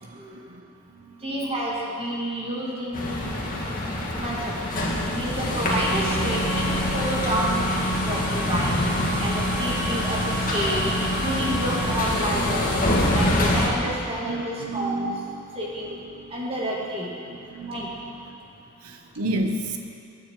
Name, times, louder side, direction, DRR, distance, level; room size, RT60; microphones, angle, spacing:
voice 1, 0.0-0.6 0.9-1.2 4.0-4.1 12.8-13.9 14.2-15.3 16.1-16.3 17.3-17.8 18.2-18.4 18.8-19.8, right 1 dB, 75° right, 5 dB, 1.2 m, -32 dB
voice 2, 1.2-3.3 4.2-4.9 5.2-10.8 11.2-12.7 13.1-15.1 15.6-16.0 16.3-17.1 17.7-17.9, right 1 dB, 25° right, -5 dB, 2.5 m, -29 dB
sound 1, 2.9-13.7, left 1 dB, 40° left, 2.1 m, -25 dB
22.0 x 9.6 x 4.9 m, 2.5 s
head